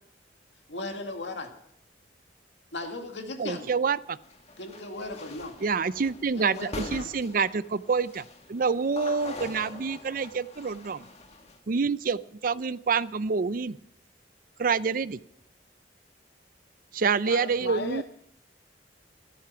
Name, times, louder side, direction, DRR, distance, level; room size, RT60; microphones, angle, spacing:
voice 1, 0.7-1.5 2.7-3.7 4.6-5.5 6.3-7.1, left 2 dB, 85° left, 4 dB, 2.2 m, -37 dB
voice 2, 3.4-4.2 5.6-11.1 11.7-13.8 14.6-15.2 16.9-18.0, right 5 dB, 50° right, 17 dB, 0.5 m, -27 dB
sound 1, 4.2-11.6, left 2 dB, 35° left, 1.8 m, -43 dB
voice 3, 17.2-18.0, left 3 dB, 65° left, 9 dB, 0.6 m, -35 dB
15.5 x 13.0 x 5.8 m, 0.73 s
head